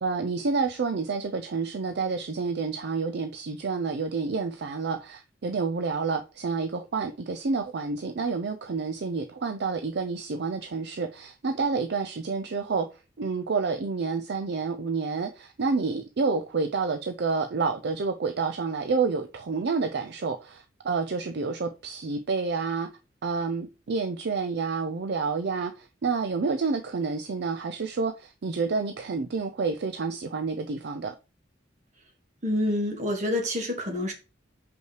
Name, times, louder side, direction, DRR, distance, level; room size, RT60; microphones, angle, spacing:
voice 1, 0.0-12.9 13.2-22.9 23.2-31.1, right 4 dB, 60° right, 0.5 m, -29 dB
voice 2, 32.4-34.1, left 1 dB, 40° right, 1.9 m, -27 dB
6.2 x 5.4 x 3.2 m
head